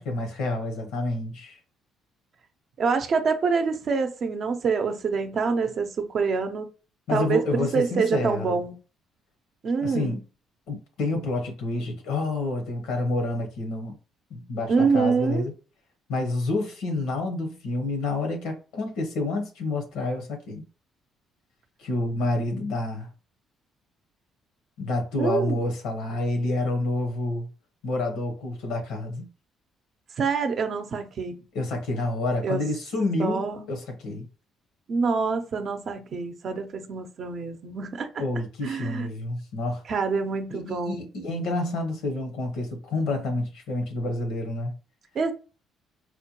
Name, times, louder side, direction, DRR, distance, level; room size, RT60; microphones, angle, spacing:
voice 1, 0.0-1.6 7.1-8.6 9.8-10.2 10.7-13.9 14.3-15.5 16.1-20.6 21.8-23.1 24.8-27.5 27.8-29.3 31.5-34.2 38.2-39.8 40.5-44.7, left 2 dB, 85° left, 0.9 m, -28 dB
voice 2, 2.8-6.7 7.1-8.7 9.6-10.2 14.7-15.5 25.2-25.6 30.2-31.4 32.4-32.6 33.2-33.6 34.9-38.1 38.6-39.1 39.9-41.0 45.1-45.3, right 5 dB, 50° right, 0.6 m, -26 dB
4.3 x 2.2 x 2.9 m
cardioid pair, 95°, 0 cm